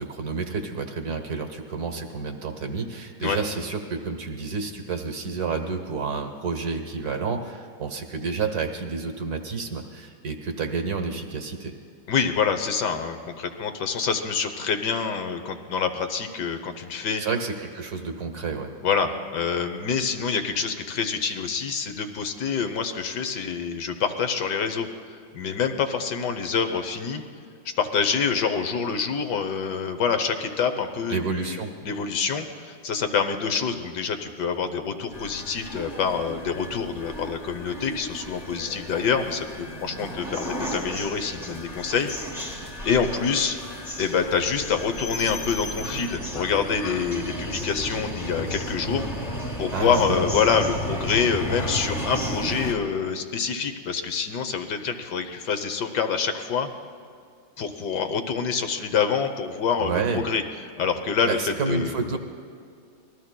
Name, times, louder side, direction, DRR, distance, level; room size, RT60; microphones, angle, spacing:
voice 1, 0.0-11.7 17.2-18.7 31.1-31.7 49.7-50.3 59.8-60.3 61.3-62.2, right 4 dB, 55° right, 6 dB, 1.4 m, -29 dB
voice 2, 12.1-17.2 18.8-24.9 25.3-27.2 27.8-42.1 42.4-43.6 44.0-49.1 49.6-56.7 57.6-60.4 60.8-61.4 61.7-62.2, left 6 dB, 60° left, 8 dB, 1.4 m, -26 dB
sound 1, 35.1-52.7, equal, 25° left, 1.6 m, -33 dB
26.5 x 20.5 x 2.2 m, 2.3 s
omnidirectional pair, 2.2 m